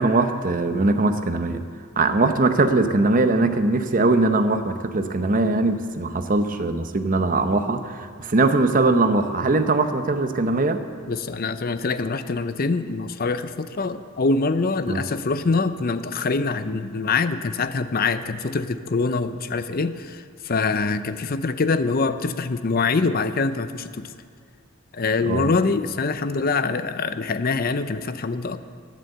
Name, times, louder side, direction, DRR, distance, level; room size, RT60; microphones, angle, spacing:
voice 1, 0.0-1.6 2.0-10.8 14.9-15.1 25.2-25.5, right 2 dB, 40° right, 8 dB, 0.8 m, -21 dB
voice 2, 11.1-24.1 24.9-28.6, left 4 dB, 45° left, 11 dB, 0.6 m, -24 dB
11.5 x 10.5 x 7.8 m, 2.3 s
head